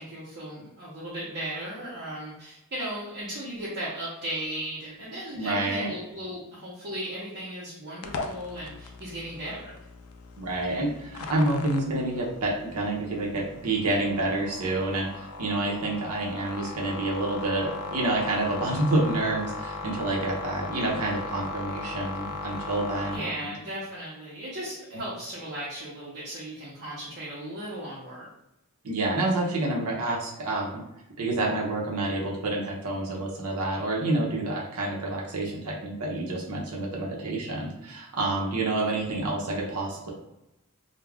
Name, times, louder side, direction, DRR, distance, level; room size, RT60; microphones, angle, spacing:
voice 1, 0.0-9.7 23.1-28.3, right 1 dB, 45° right, -9 dB, 0.7 m, -36 dB
voice 2, 5.3-5.9 10.4-23.5 28.8-30.8 31.2-40.1, right 2 dB, 80° right, -2 dB, 0.6 m, -28 dB
sound 1, 8.0-23.2, left 3 dB, 75° left, 0.3 m, -38 dB
2.3 x 2.1 x 3.3 m, 0.89 s
head